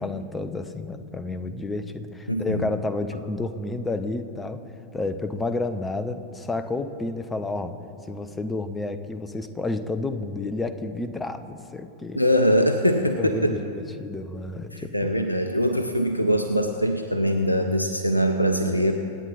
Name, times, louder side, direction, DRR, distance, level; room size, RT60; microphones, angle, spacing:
voice 1, 0.0-4.6 4.9-7.8 8.1-12.2 13.2-15.1, left 2 dB, 15° left, 11 dB, 0.8 m, -30 dB
voice 2, 2.3-2.7 12.1-13.6 14.7-18.9, equal, 85° left, 7 dB, 0.7 m, -22 dB
26.5 x 9.1 x 4.1 m, 2.6 s
figure-of-eight pair, 90°, 0 cm